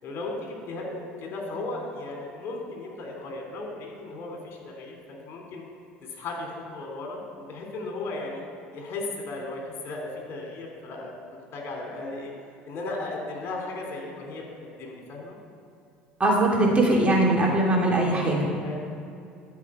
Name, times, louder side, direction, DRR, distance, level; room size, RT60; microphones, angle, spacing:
voice 1, 0.0-5.6 6.1-11.2 11.5-12.3 12.6-15.4 18.6-18.8, left 2 dB, 50° left, 0 dB, 3.0 m, -36 dB
voice 2, 16.2-18.5, right 1 dB, 25° right, -3 dB, 3.1 m, -21 dB
13.0 x 5.7 x 8.1 m, 2.4 s
hypercardioid pair, 65°, 5 cm